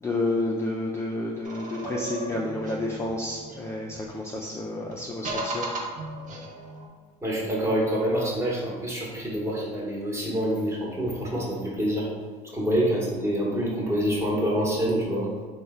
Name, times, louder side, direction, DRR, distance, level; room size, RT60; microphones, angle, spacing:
voice 1, 0.0-5.7, left 2 dB, 15° left, -2 dB, 0.3 m, -30 dB
sound 1, 1.4-4.2 4.9-6.9, right 2 dB, 40° right, 0.6 m, -36 dB
voice 2, 7.2-12.1 12.5-15.3, equal, 15° right, -4 dB, 0.9 m, -26 dB
3.1 x 2.2 x 3.4 m, 1.5 s
supercardioid pair, 95°, 19 cm